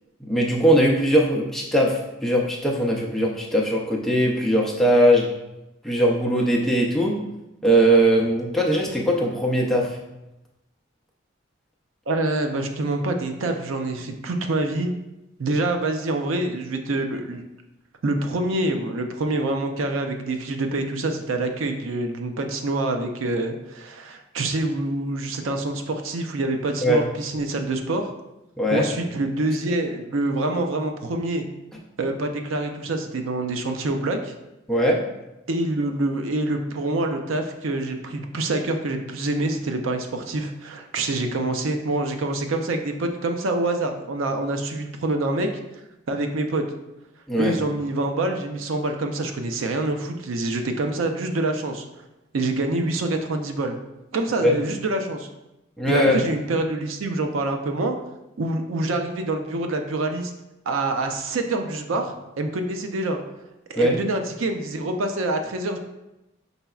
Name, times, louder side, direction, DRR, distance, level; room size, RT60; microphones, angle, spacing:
voice 1, 0.2-5.3 5.8-7.2 7.6-10.0 26.8-27.0 28.6-28.9 34.7-35.0 47.3-47.6 54.4-54.5 55.8-56.2 63.8-64.0, equal, ahead, -3 dB, 0.5 m, -20 dB
voice 2, 12.1-14.9 15.4-17.4 18.0-28.1 28.7-31.4 32.0-34.3 35.5-45.5 46.1-46.6 47.4-51.8 52.3-53.7 54.1-55.3 55.9-58.0 58.4-60.3 60.7-63.2 63.7-65.8, right 2 dB, 85° right, 5 dB, 0.5 m, -26 dB
5.5 x 3.9 x 2.3 m, 0.95 s
head